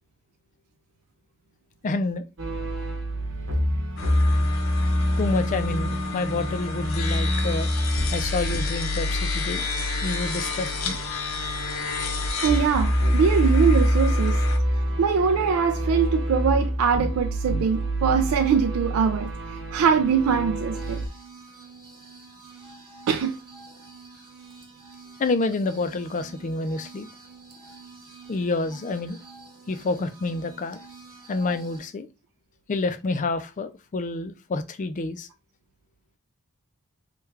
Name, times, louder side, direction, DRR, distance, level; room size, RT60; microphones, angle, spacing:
voice 1, 1.8-2.2 5.2-7.7 8.1-9.7 10.0-11.0 25.2-27.1 28.3-29.2 29.7-30.8 31.3-32.1 32.7-35.3, left 3 dB, 35° left, 0.3 m, -28 dB
sound 1, 2.4-21.1, equal, 60° right, 0.9 m, -26 dB
sound 2, 4.0-14.6, left 5 dB, 65° left, 0.7 m, -33 dB
voice 2, 12.4-14.4 15.0-19.3 19.7-21.0 23.1-23.4, right 6 dB, 85° right, 0.3 m, -22 dB
sound 3, 20.7-31.8, right 4 dB, 20° right, 1.0 m, -47 dB
3.1 x 2.3 x 3.4 m
head